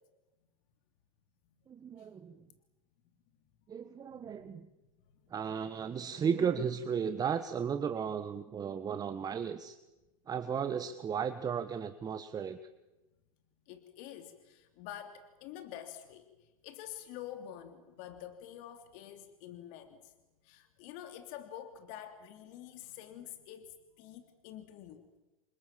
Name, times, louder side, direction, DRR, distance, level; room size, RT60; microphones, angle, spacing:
voice 1, 1.7-2.4 3.7-4.7 5.3-9.8 10.3-12.6, right 7 dB, 20° right, 10 dB, 1.4 m, -35 dB
voice 2, 4.1-4.6 13.7-20.1 20.4-25.0, left 11 dB, 50° left, 7 dB, 3.1 m, -48 dB
29.5 x 25.0 x 7.5 m, 1.1 s
hypercardioid pair, 115°, 18 cm